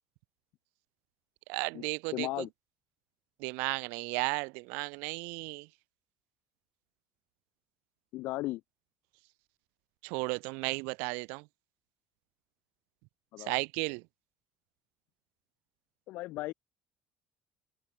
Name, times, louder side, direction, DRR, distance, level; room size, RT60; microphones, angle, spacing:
voice 1, 1.5-2.4 3.4-5.7 10.0-11.4 13.5-14.0, right 31 dB, 85° right, 0.4 m, -34 dB
voice 2, 2.1-2.5 8.1-8.6 13.3-13.6 16.1-16.5, left 18 dB, 70° left, 1.1 m, -36 dB
cardioid pair, 110°, 3 cm